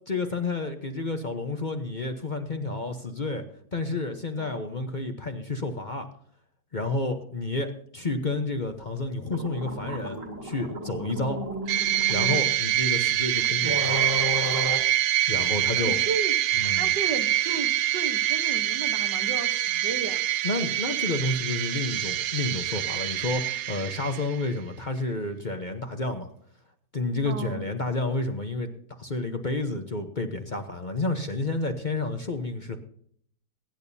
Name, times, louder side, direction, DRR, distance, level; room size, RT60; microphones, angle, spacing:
voice 1, 0.1-3.4 3.7-6.1 6.7-11.4 12.1-14.0 15.3-16.0 16.5-16.9 20.4-26.3 26.9-28.7 29.0-32.8, left 2 dB, 35° left, 6 dB, 1.0 m, -30 dB
voice 2, 4.4-4.7 15.8-16.4 16.6-20.2 27.3-27.7, right 5 dB, 85° right, 8 dB, 1.9 m, -34 dB
sound 1, 9.0-9.1 9.2-12.4 13.2-13.3 13.6-14.8, equal, 50° right, 2.8 m, -33 dB
sound 2, 11.7-24.5, right 12 dB, 70° right, 0.7 m, -26 dB
22.0 x 10.5 x 2.8 m, 0.63 s
omnidirectional pair, 1.8 m